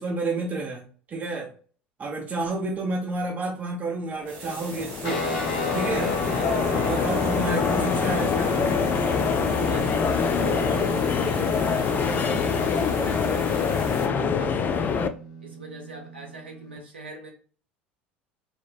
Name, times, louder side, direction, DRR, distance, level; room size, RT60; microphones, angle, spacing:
voice 1, 0.0-1.5 2.0-5.2 5.7-6.1 6.7-8.7 10.4-10.9, right 2 dB, 30° right, 0.6 m, -30 dB
sound 1, 4.2-15.1, left 6 dB, 35° left, 0.3 m, -25 dB
sound 2, 4.2-14.1, right 4 dB, 55° right, 1.0 m, -43 dB
sound 3, 5.0-16.8, left 1 dB, 70° left, 1.0 m, -33 dB
voice 2, 5.7-6.0 6.3-7.8 8.8-13.7 14.1-15.1 15.4-17.3, right 2 dB, 85° right, 0.7 m, -43 dB
3.7 x 2.0 x 2.4 m
figure-of-eight pair, 70°, 6 cm